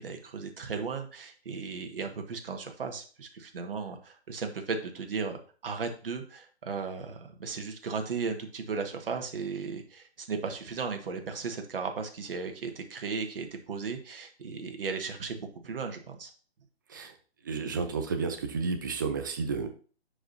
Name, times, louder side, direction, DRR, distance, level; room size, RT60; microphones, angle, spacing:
voice 1, 0.0-5.4 5.6-16.3, right 5 dB, 55° right, 5 dB, 1.5 m, -36 dB
voice 2, 17.4-19.7, right 4 dB, 20° right, 6 dB, 0.5 m, -31 dB
11.0 x 5.0 x 2.7 m, 0.38 s
figure-of-eight pair, 145°, 33 cm